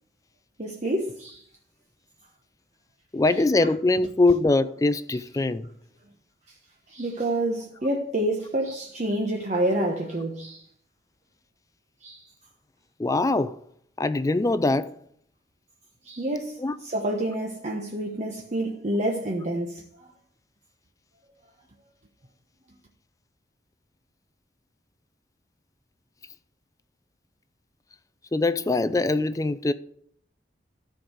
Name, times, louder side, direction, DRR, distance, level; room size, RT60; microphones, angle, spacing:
voice 1, 0.6-1.4 3.6-3.7 6.9-10.7 12.0-12.3 16.0-20.1, right 1 dB, 45° right, 1.1 m, -28 dB
voice 2, 3.1-5.7 13.0-13.6 14.0-14.9 16.6-16.7 28.3-29.7, left 2 dB, 20° left, 0.4 m, -23 dB
14.0 x 4.7 x 6.5 m
head